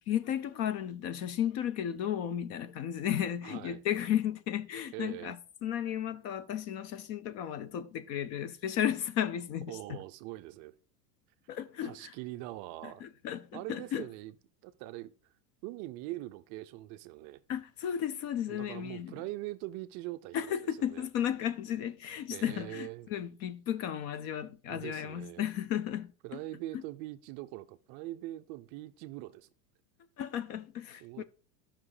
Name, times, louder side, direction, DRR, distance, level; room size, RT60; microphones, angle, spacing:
voice 1, 0.1-5.4 5.6-10.0 11.5-12.1 12.8-14.1 17.5-19.2 20.3-26.1 30.2-31.2, left 10 dB, 35° left, 0.5 m, -34 dB
voice 2, 3.4-3.8 4.9-5.3 9.7-10.8 11.8-13.0 13.5-14.3 14.6-15.3 15.6-17.4 18.5-21.1 22.3-23.1 24.7-25.5 26.2-29.5 31.0-31.2, right 17 dB, 40° right, 0.5 m, -42 dB
11.0 x 5.9 x 4.9 m
supercardioid pair, 140°, 48 cm